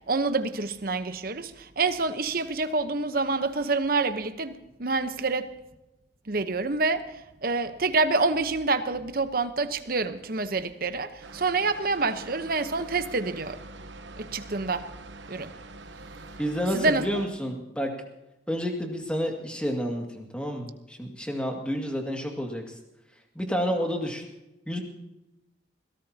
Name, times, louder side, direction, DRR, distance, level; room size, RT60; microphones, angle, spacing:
voice 1, 0.1-4.5 4.8-5.5 6.3-7.1 7.4-13.6 14.2-14.9 15.3-15.5 16.7-17.1, right 3 dB, 50° right, 1.0 m, -27 dB
sound 1, 11.2-17.3, right 3 dB, 70° right, 1.0 m, -45 dB
voice 2, 16.4-17.9 18.5-22.8 23.3-24.2 24.7-24.8, equal, 5° left, 2.1 m, -30 dB
21.5 x 17.5 x 2.9 m
head